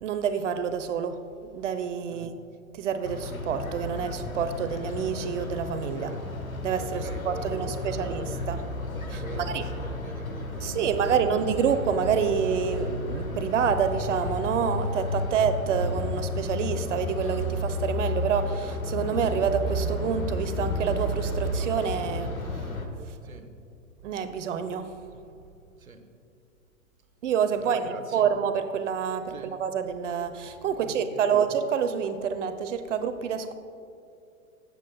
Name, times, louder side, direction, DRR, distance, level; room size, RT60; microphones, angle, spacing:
voice 1, 0.0-1.2 1.5-2.3 2.7-6.1 6.6-8.6 9.1-9.6 10.6-22.4 24.0-24.9 27.2-33.6, right 7 dB, 60° right, 10 dB, 0.9 m, -28 dB
sound 1, 3.0-22.9, left 1 dB, 85° left, 1.3 m, -32 dB
voice 2, 6.9-8.4 9.2-11.4 15.3-15.5 23.2-23.5 25.8-26.1 27.6-28.3 29.3-29.6 30.8-31.6, right 4 dB, 80° right, 7 dB, 1.2 m, -43 dB
20.5 x 8.2 x 2.2 m, 2.5 s
figure-of-eight pair, 100°, 41 cm